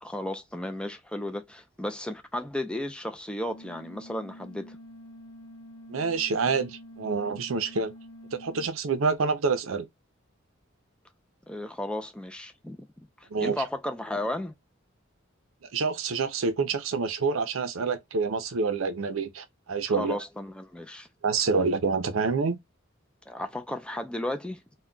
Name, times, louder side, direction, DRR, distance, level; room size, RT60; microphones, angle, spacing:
voice 1, 0.0-4.8 11.5-12.8 13.2-14.5 19.9-21.1 23.3-24.6, left 1 dB, 5° left, 0.4 m, -34 dB
sound 1, 3.5-8.7, left 1 dB, 70° left, 0.4 m, -47 dB
voice 2, 5.9-7.9 8.3-9.9 13.3-13.6 15.7-20.2 21.2-22.6, right 4 dB, 75° right, 0.6 m, -27 dB
2.2 x 2.2 x 3.7 m
head